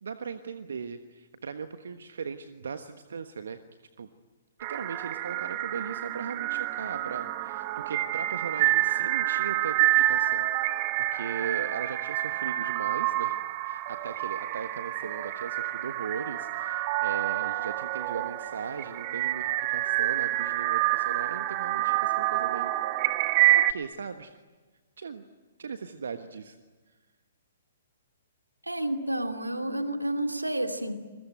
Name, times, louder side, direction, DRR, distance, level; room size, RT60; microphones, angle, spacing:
voice 1, 0.0-3.6 4.0-4.1 4.7-22.7 23.5-24.3 25.0-25.2 25.6-26.6, right 6 dB, 65° right, 9 dB, 1.3 m, -38 dB
sound 1, 4.6-23.7, right 16 dB, 35° right, 1.2 m, -28 dB
voice 2, 28.7-31.0, right 1 dB, 90° right, 5 dB, 2.6 m, -30 dB
29.0 x 22.0 x 9.3 m, 1.3 s
figure-of-eight pair, 120°, 0 cm